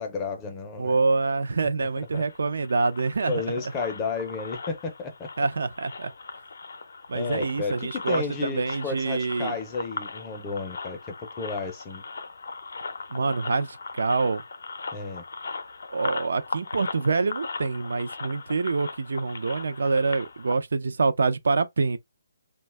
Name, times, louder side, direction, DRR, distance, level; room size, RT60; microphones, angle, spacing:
voice 1, 0.0-1.0 1.8-1.9 2.1-2.2 3.3-5.3 7.1-12.0 14.9-15.2, left 4 dB, 15° left, 0.5 m, -32 dB
voice 2, 0.8-3.4 5.4-6.1 7.1-9.5 13.1-14.4 15.9-22.0, right 4 dB, 70° right, 0.4 m, -26 dB
sound 1, 1.9-20.6, left 4 dB, 70° left, 0.5 m, -39 dB
2.7 x 2.2 x 3.2 m
hypercardioid pair, 170°, 0 cm